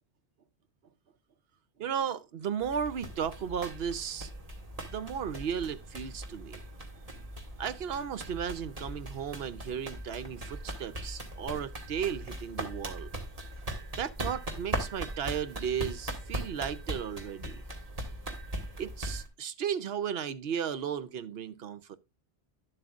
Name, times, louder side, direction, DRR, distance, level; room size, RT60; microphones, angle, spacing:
voice 1, 1.8-4.3 4.9-6.6 7.6-13.1 14.0-17.6 18.8-22.0, right 8 dB, 65° right, 0.9 m, -35 dB
sound 1, 2.6-19.3, right 1 dB, 35° right, 1.8 m, -39 dB
11.5 x 7.7 x 2.4 m
omnidirectional pair, 1.1 m